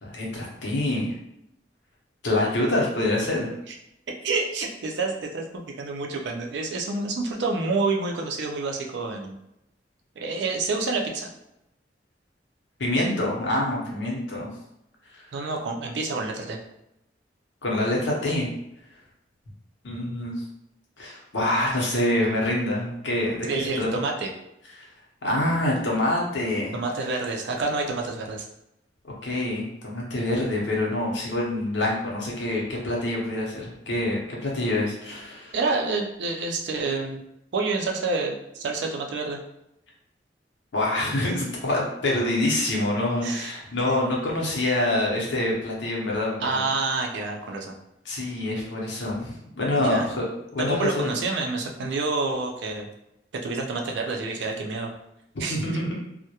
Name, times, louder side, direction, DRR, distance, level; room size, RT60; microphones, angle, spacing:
voice 1, 0.0-1.1 2.2-3.5 12.8-14.5 15.1-15.3 17.6-18.5 19.8-20.4 21.0-23.9 24.7-24.9 25.2-26.8 29.0-35.5 40.7-46.7 48.0-50.2 50.5-51.1 55.5-56.0, left 1 dB, 85° left, -3 dB, 0.7 m, -26 dB
voice 2, 4.2-9.4 10.2-11.3 15.3-16.6 23.5-24.3 26.7-28.4 35.5-37.2 37.5-39.4 43.2-43.5 43.9-44.0 46.4-47.8 49.8-50.1 50.6-52.9 53.4-54.9 55.4-55.8, right 3 dB, 70° right, 2 dB, 0.4 m, -28 dB
2.2 x 2.1 x 2.8 m, 0.84 s
head